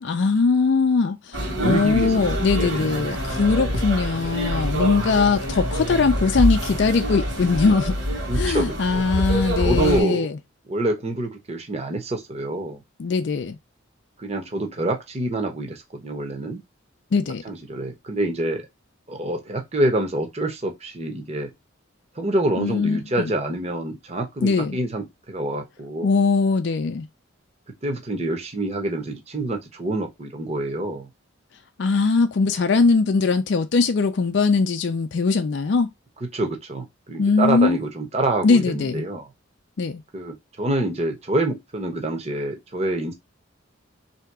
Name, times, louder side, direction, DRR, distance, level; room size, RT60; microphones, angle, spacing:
voice 1, 0.0-8.0 8.3-10.4 13.0-13.6 17.1-17.4 22.6-23.3 24.4-24.8 26.0-27.1 31.8-35.9 37.2-37.8 38.4-39.0 39.8-40.0, left 4 dB, 55° left, 0.4 m, -21 dB
sound 1, 1.3-10.0, equal, 55° right, 1.6 m, -26 dB
voice 2, 1.4-2.2 2.5-2.9 4.9-5.0 8.3-9.0 9.6-10.3 10.7-12.8 14.2-16.6 17.4-18.7 19.1-21.5 22.2-26.1 27.8-31.1 36.3-39.3 40.1-43.1, right 1 dB, 30° right, 0.9 m, -26 dB
3.4 x 2.8 x 4.6 m
head